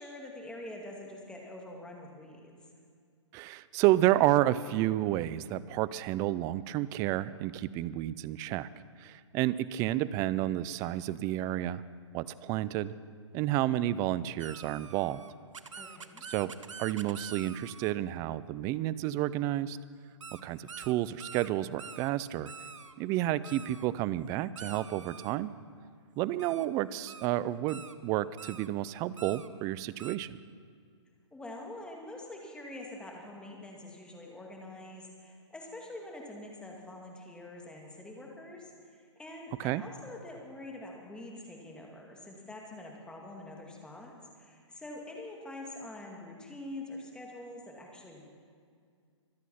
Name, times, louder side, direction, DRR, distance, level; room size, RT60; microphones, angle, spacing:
voice 1, 0.0-2.5 15.8-16.2 31.3-48.3, left 1 dB, 5° left, 0 dB, 2.2 m, -45 dB
voice 2, 3.3-8.7 9.0-11.8 12.1-12.9 13.3-15.2 16.3-16.5 16.8-19.8 20.4-22.5 23.0-25.5 26.2-30.4 39.6-39.8, right 14 dB, 20° right, 18 dB, 0.3 m, -30 dB
sound 1, 14.4-17.9 20.2-20.4 20.7-20.9 21.2-21.5 21.8-22.1 22.5-22.9 23.4-23.9 24.6-25.4 26.4-26.7 27.1-27.3 27.7-27.9 28.4-28.7 29.2-29.5 30.0-30.2, right 5 dB, 90° right, 0.8 m, -46 dB
24.5 x 8.2 x 5.7 m, 2.2 s
hypercardioid pair, 135°, 16 cm